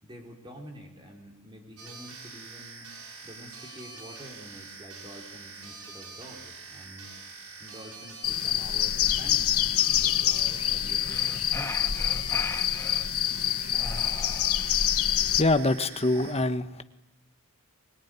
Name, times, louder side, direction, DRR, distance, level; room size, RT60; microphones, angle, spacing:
voice 1, 0.0-2.9 3.2-7.1 7.6-11.5, equal, 20° right, 0 dB, 4.9 m, -47 dB
sound 1, 1.8-16.3, right 4 dB, 80° right, 6.3 m, -45 dB
sound 2, 8.2-15.4, left 11 dB, 70° left, 1.3 m, -26 dB
sound 3, 10.9-13.1 13.7-15.0, left 2 dB, 10° left, 1.6 m, -38 dB
voice 2, 15.4-16.8, left 2 dB, 30° left, 10 dB, 1.1 m, -25 dB
24.0 x 24.0 x 9.6 m, 0.90 s
head